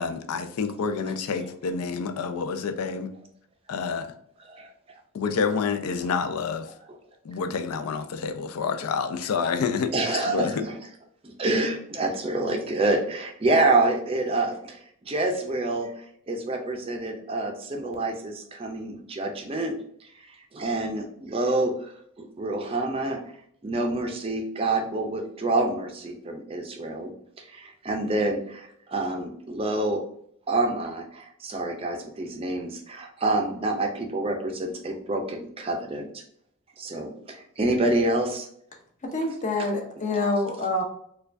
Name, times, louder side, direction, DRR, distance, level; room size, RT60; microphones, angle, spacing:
voice 1, 0.0-3.1 3.7-4.1 5.1-6.7 7.2-10.6, left 5 dB, 85° left, 0.4 m, -28 dB
voice 2, 9.9-10.7 11.2-21.9 22.2-23.2 23.6-30.0 30.5-36.2 36.8-38.5, right 2 dB, 25° right, 0.4 m, -27 dB
voice 3, 39.0-40.8, left 2 dB, 35° left, 0.6 m, -26 dB
4.4 x 2.3 x 2.5 m
head